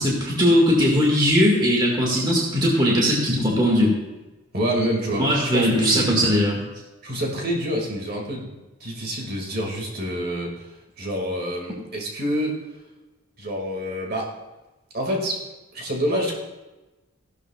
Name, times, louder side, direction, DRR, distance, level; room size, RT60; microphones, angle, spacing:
voice 1, 0.0-3.9 5.2-6.6, equal, 20° right, -3 dB, 1.9 m, -19 dB
voice 2, 4.5-6.2 7.0-8.5 8.8-10.7 11.0-12.6 13.4-14.3 14.9-15.4 15.7-16.3, equal, 45° right, -1 dB, 2.1 m, -27 dB
16.0 x 11.5 x 2.4 m, 1.1 s
head